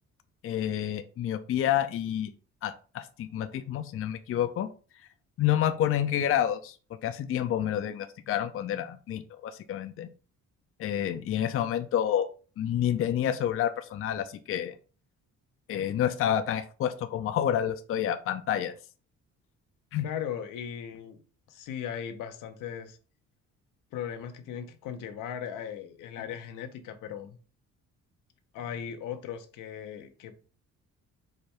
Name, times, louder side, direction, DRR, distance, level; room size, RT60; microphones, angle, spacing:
voice 1, 0.4-2.3 2.6-4.7 5.4-6.8 7.0-10.1 10.8-12.3 12.6-14.7 15.7-18.7 19.9-20.1, left 10 dB, 45° left, 0.4 m, -29 dB
voice 2, 20.0-21.2 21.5-23.0 23.9-27.4 28.5-30.3, left 8 dB, 85° left, 0.8 m, -38 dB
4.9 x 2.2 x 4.3 m
cardioid pair, 105°, 31 cm